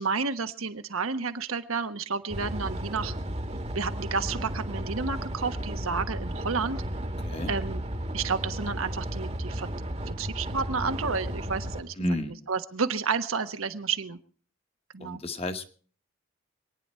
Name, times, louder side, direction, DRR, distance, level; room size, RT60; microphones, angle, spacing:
voice 1, 0.0-3.1 3.7-6.8 7.5-7.8 8.1-9.7 10.1-11.9 12.5-14.2 14.9-15.2, right 5 dB, 90° right, 8 dB, 1.2 m, -31 dB
sound 1, 2.3-11.8, right 1 dB, 30° right, 1.2 m, -34 dB
voice 2, 7.2-7.5 11.9-12.4 15.0-15.6, left 1 dB, 30° left, 8 dB, 1.1 m, -31 dB
26.0 x 9.7 x 4.3 m, 0.42 s
head